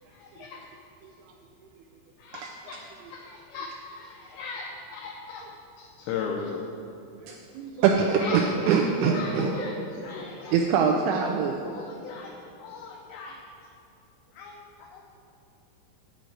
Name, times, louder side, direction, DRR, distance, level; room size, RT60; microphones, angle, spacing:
voice 1, 0.1-0.7 2.2-5.5 5.8-6.6 8.2-8.8 9.1-9.7 10.0-10.6 11.6-13.4 14.3-15.2, left 5 dB, 85° left, 1 dB, 2.5 m, -38 dB
voice 2, 7.2-9.5 10.5-11.7, right 6 dB, 90° right, 1 dB, 2.6 m, -24 dB
voice 3, 9.0-10.8, left 1 dB, 70° left, -3 dB, 2.8 m, -38 dB
11.0 x 5.1 x 7.7 m, 2.8 s
omnidirectional pair, 5.9 m